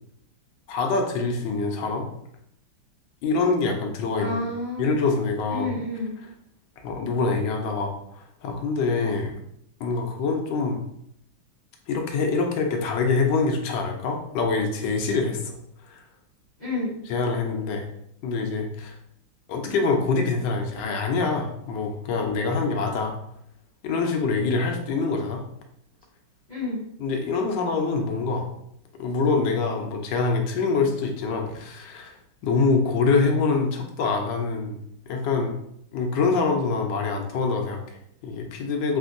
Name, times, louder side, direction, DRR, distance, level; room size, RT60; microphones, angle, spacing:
voice 1, 0.7-2.1 3.2-4.4 4.8-5.7 6.8-9.3 9.8-10.8 11.9-15.6 15.9-16.0 17.1-17.8 18.2-18.9 19.5-23.1 23.8-25.4 27.0-28.5 29.0-32.2 32.4-34.8 35.1-35.5 35.9-39.0, left 4 dB, 75° left, 3 dB, 1.2 m, -25 dB
voice 2, 4.2-4.9 5.5-6.2 16.6-16.9 26.5-26.8, left 2 dB, 30° left, -11 dB, 0.9 m, -29 dB
3.5 x 2.5 x 2.5 m, 0.73 s
omnidirectional pair, 2.1 m